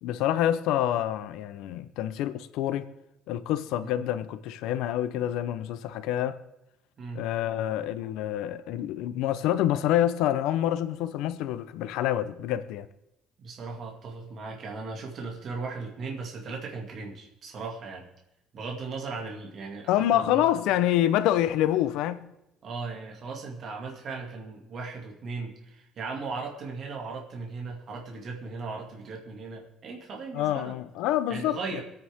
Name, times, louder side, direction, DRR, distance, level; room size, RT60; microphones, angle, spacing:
voice 1, 0.0-2.9 3.3-6.4 7.1-12.9 19.9-22.3 30.3-31.8, left 12 dB, 90° left, 0.7 m, -27 dB
voice 2, 13.4-18.1 18.5-20.5 22.6-30.8 31.3-31.8, right 4 dB, 40° right, 2.3 m, -37 dB
25.0 x 9.2 x 3.6 m
cardioid pair, 165°, 0 cm